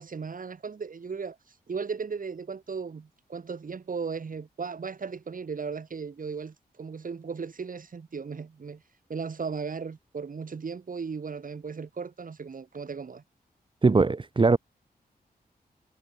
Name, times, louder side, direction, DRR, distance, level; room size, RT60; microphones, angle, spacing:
voice 1, 0.0-1.4 1.7-8.8 9.1-13.2, right 5 dB, 55° right, 5.6 m, -36 dB
voice 2, 13.8-14.6, right 3 dB, 30° right, 0.9 m, -20 dB
cardioid pair, 80°, 16 cm